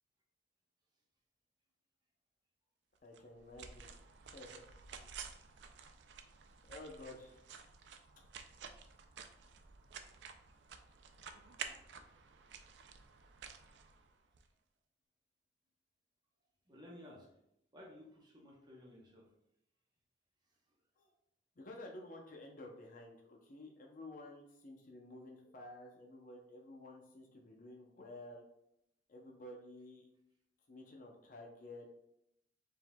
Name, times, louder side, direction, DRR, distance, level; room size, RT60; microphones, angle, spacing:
voice 1, 3.0-3.9 4.2-4.6 6.7-7.5 21.0-21.1 21.6-28.4 29.1-30.1 30.7-31.9, left 1 dB, 50° left, 0 dB, 0.6 m, -52 dB
sound 1, 3.1-14.5, right 6 dB, 75° right, 0.4 m, -52 dB
voice 2, 16.7-17.3 17.7-19.3, left 1 dB, 25° right, -3 dB, 0.8 m, -55 dB
4.8 x 3.7 x 2.2 m, 0.79 s
head